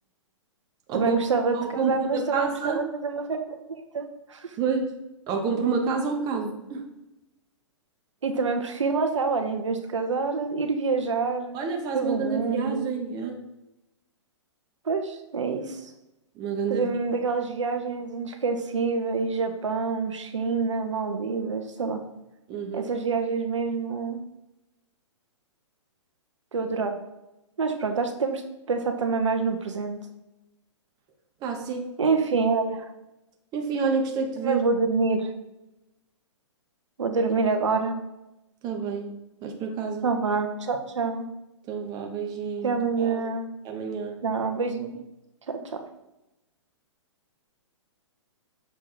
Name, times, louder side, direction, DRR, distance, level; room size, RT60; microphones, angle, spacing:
voice 1, 0.9-4.5 8.2-11.5 11.9-12.9 14.8-15.9 16.7-22.0 22.7-24.2 26.5-27.0 27.6-28.4 28.7-30.0 32.0-32.9 34.4-35.3 37.0-38.0 40.0-41.3 42.6-43.5 44.2-45.0 45.5-45.8, right 4 dB, 75° right, 5 dB, 0.8 m, -27 dB
voice 2, 1.5-2.9 4.6-5.0 5.3-6.9 11.5-13.4 16.4-16.9 22.5-22.9 31.4-31.9 33.5-34.6 38.6-40.1 41.7-43.3 43.6-44.2, right 5 dB, 25° right, 2 dB, 0.9 m, -29 dB
6.4 x 3.5 x 4.4 m, 0.94 s
figure-of-eight pair, 120°, 16 cm